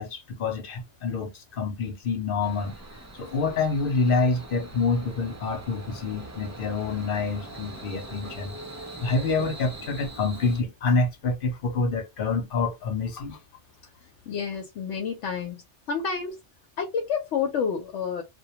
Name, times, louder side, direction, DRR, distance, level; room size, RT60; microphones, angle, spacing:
voice 1, 0.0-2.7 3.2-8.6 9.0-13.4, left 4 dB, 60° left, 0.7 m, -27 dB
sound 1, 2.4-10.6, right 2 dB, 30° right, 0.3 m, -42 dB
voice 2, 14.3-15.6 15.9-16.4 16.8-18.2, left 6 dB, 90° left, 1.0 m, -29 dB
2.2 x 2.2 x 2.8 m
omnidirectional pair, 1.2 m